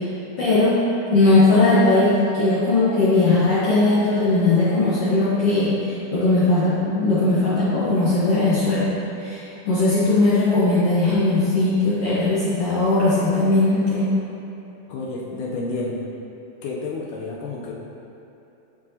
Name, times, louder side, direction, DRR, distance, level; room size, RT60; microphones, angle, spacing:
voice 1, 0.4-0.7 1.1-8.9 9.2-14.1, left 2 dB, 65° left, -10 dB, 1.6 m, -19 dB
voice 2, 14.9-16.0 16.6-17.7, left 3 dB, 80° left, -2 dB, 1.9 m, -30 dB
10.5 x 4.7 x 2.7 m, 3.0 s
omnidirectional pair, 4.0 m